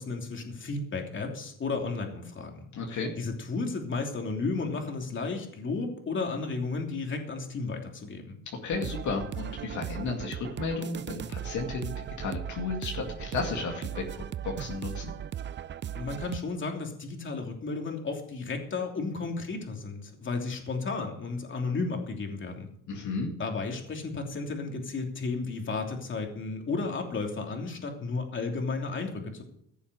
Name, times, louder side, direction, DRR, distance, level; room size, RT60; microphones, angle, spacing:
voice 1, 0.0-8.4 15.9-22.7 23.4-29.4, left 3 dB, 40° left, 2 dB, 3.0 m, -33 dB
voice 2, 2.7-3.1 8.6-15.1 22.9-23.3, left 4 dB, 65° left, 1 dB, 2.2 m, -33 dB
sound 1, 8.7-16.4, right 9 dB, 35° right, 0.5 m, -37 dB
16.0 x 7.0 x 6.4 m, 0.71 s
cardioid pair, 110°, 32 cm